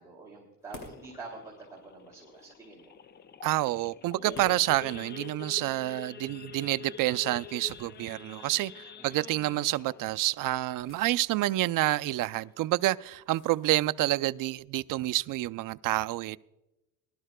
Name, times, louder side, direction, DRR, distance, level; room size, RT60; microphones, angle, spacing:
voice 1, 0.0-2.9 9.0-9.2, right 3 dB, 10° right, 2.6 m, -47 dB
sound 1, 0.6-14.2, left 2 dB, 50° left, 2.6 m, -57 dB
Idling / Accelerating revving vroom / Sawing, 0.7-11.8 12.2-12.4 12.6-12.7 13.2-13.5 14.0-14.1 14.3-14.6, left 7 dB, 30° left, 0.4 m, -47 dB
voice 2, 3.4-16.4, right 16 dB, 65° right, 0.5 m, -28 dB
22.0 x 12.0 x 2.2 m
cardioid pair, 150°, 35 cm